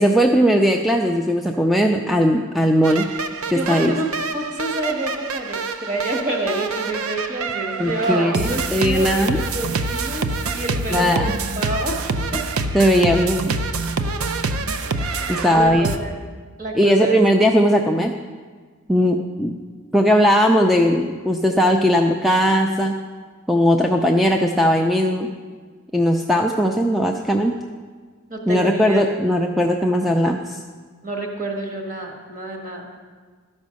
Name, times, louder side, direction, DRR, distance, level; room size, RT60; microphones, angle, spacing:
voice 1, 0.0-3.1 3.5-3.9 7.8-9.4 10.9-11.3 12.7-13.5 15.3-15.9 16.7-18.1 18.9-19.5 19.9-22.9 23.5-25.3 25.9-27.5 28.5-30.6, equal, ahead, 2 dB, 0.3 m, -18 dB
sound 1, 2.8-16.0, right 3 dB, 80° right, 0.6 m, -26 dB
voice 2, 3.5-4.1 4.3-10.3 10.5-12.0 12.3-12.4 15.5-16.1 16.6-17.2 28.3-29.0 31.0-32.9, right 1 dB, 35° right, 1 dB, 1.5 m, -28 dB
12.5 x 5.3 x 6.3 m, 1.5 s
head